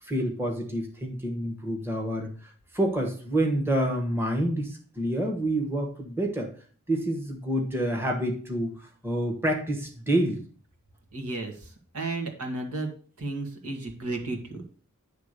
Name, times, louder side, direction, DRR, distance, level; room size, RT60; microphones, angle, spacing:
voice 1, 0.0-6.5 6.9-10.4, right 1 dB, 10° right, 1 dB, 1.2 m, -28 dB
voice 2, 11.1-11.5 11.9-12.9 13.2-14.6, right 2 dB, 80° right, 3 dB, 1.8 m, -33 dB
10.5 x 3.5 x 6.6 m, 0.43 s
head